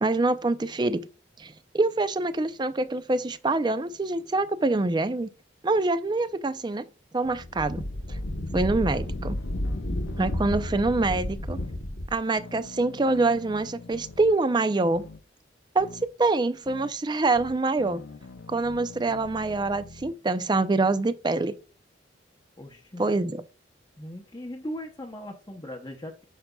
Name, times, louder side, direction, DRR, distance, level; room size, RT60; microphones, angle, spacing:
voice 1, 0.0-1.0 1.4-5.3 5.6-6.9 7.1-7.8 8.1-8.2 8.5-9.4 10.2-11.6 12.1-15.0 15.7-15.9 16.2-18.0 18.5-21.5 23.0-23.4, right 3 dB, 25° right, 0.4 m, -25 dB
sound 1, 7.2-7.5 8.1-8.3 8.9-10.9 11.5-11.8 12.4-14.3 14.9-15.2 15.8-16.1 16.7-16.9 17.3-20.1, left 4 dB, 85° left, 0.6 m, -45 dB
Wind, 7.3-12.2, left 1 dB, 70° left, 1.0 m, -31 dB
voice 2, 22.6-23.0 24.0-26.2, equal, 20° left, 0.7 m, -38 dB
8.9 x 5.9 x 2.3 m
head